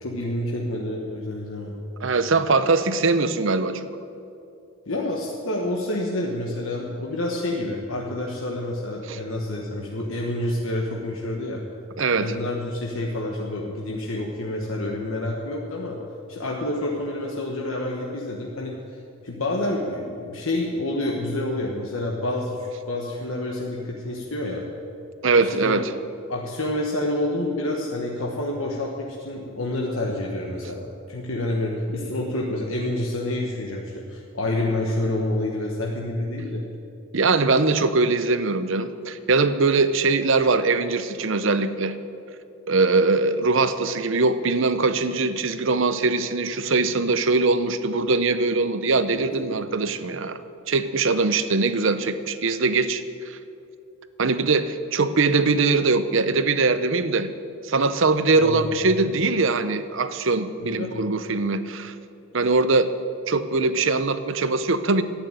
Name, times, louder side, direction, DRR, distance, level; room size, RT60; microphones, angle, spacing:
voice 1, 0.0-1.8 4.9-11.6 12.2-16.0 16.3-24.6 25.4-25.8 26.3-36.6 58.4-58.7 60.6-61.0, left 1 dB, 70° left, -1 dB, 1.3 m, -28 dB
voice 2, 2.0-3.9 9.1-9.2 12.0-12.3 25.2-25.9 37.1-41.9 42.7-50.4 50.7-53.4 54.2-57.3 57.6-61.9 62.3-62.9 63.3-65.0, right 3 dB, 60° right, 12 dB, 0.7 m, -22 dB
11.5 x 9.1 x 9.0 m, 2.6 s
head